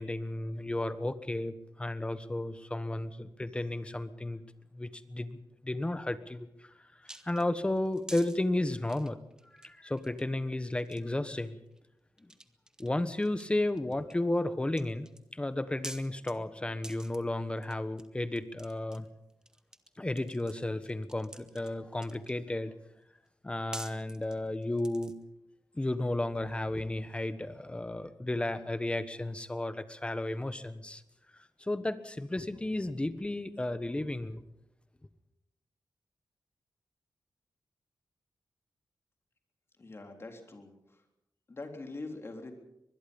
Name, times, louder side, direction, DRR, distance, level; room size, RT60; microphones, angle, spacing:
voice 1, 0.0-4.4 4.7-6.5 7.0-9.2 9.6-11.6 12.8-15.1 15.3-19.1 20.0-22.7 23.4-25.1 25.7-31.0 31.6-34.4, left 1 dB, 15° left, 12 dB, 1.3 m, -33 dB
sound 1, 7.1-8.4 8.8-9.7 10.0-10.2 10.8-11.5 11.8-11.9 12.2-12.9 13.2-14.2 14.7-15.2 15.8-16.3 16.8-17.2 17.6-18.1 18.4-19.9 20.2-22.4 23.3-23.4 23.7-25.2, right 1 dB, 10° right, 1.4 m, -47 dB
voice 2, 39.8-40.7 41.5-42.5, left 2 dB, 35° left, 4 dB, 3.7 m, -43 dB
24.0 x 21.0 x 5.4 m, 0.84 s
wide cardioid pair, 130°, 7 cm